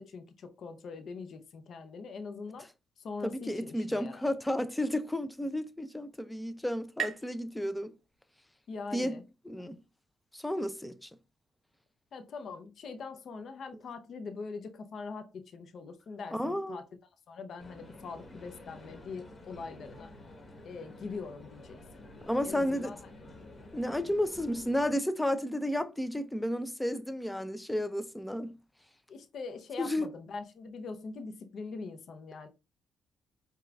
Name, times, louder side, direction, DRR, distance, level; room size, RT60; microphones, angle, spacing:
voice 1, 0.0-2.7 3.0-4.3 8.7-9.2 12.1-16.9 17.3-20.1 20.6-22.1 22.4-23.0 29.1-32.5, left 4 dB, 60° left, 0.6 m, -42 dB
voice 2, 3.2-7.9 8.9-9.2 9.5-9.8 10.3-11.1 16.3-16.8 22.3-22.9 23.7-28.5 29.8-30.1, left 1 dB, 5° left, 0.4 m, -32 dB
sound 1, 5.5-8.9, right 8 dB, 50° right, 1.1 m, -43 dB
sound 2, 17.6-24.9, left 1 dB, 30° left, 1.3 m, -50 dB
5.0 x 2.3 x 2.4 m
cardioid pair, 90°, 0 cm